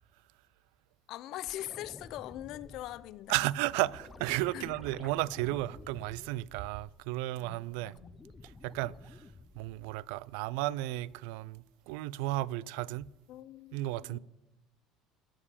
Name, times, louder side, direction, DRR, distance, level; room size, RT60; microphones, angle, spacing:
voice 1, 1.1-3.4 4.5-4.7 7.4-8.1 13.3-14.2, left 14 dB, 60° left, 0.5 m, -42 dB
sound 1, 1.4-7.2 7.5-10.1 12.5-12.6, left 3 dB, 15° left, 0.6 m, -52 dB
voice 2, 3.3-8.0 8.4-9.2 9.6-13.1 13.7-14.2, right 17 dB, 80° right, 0.3 m, -34 dB
9.8 x 7.2 x 8.3 m
supercardioid pair, 120°, 0 cm